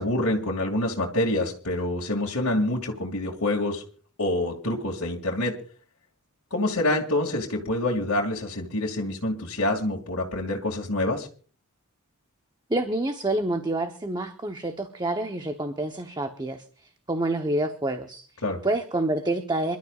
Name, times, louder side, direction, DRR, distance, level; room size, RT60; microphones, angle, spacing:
voice 1, 0.0-3.8 4.2-5.6 6.5-11.3 18.4-18.6, left 1 dB, 75° left, -2 dB, 2.3 m, -26 dB
voice 2, 12.7-16.6 17.1-18.3 18.6-19.8, right 2 dB, 20° right, 6 dB, 0.9 m, -27 dB
27.5 x 12.5 x 2.4 m, 0.41 s
head